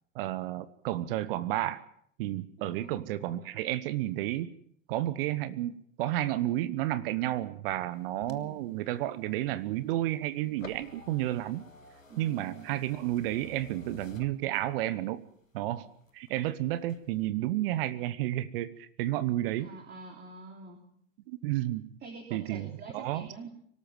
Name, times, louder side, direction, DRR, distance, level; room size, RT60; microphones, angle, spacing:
voice 1, 0.1-1.8 2.2-4.5 4.9-11.6 12.2-15.2 15.5-15.9 16.1-19.7 21.3-21.8 22.3-23.3, right 14 dB, 45° right, 16 dB, 1.1 m, -31 dB
voice 2, 2.6-3.2 8.3-8.6 12.1-12.8 19.6-20.8 22.0-23.5, right 3 dB, 25° right, 3 dB, 3.5 m, -46 dB
Car window up, 7.9-15.0 15.4-16.4 16.8-17.3, left 3 dB, 90° left, 1.6 m, -52 dB
24.5 x 13.0 x 9.3 m, 0.67 s
figure-of-eight pair, 90°, 39 cm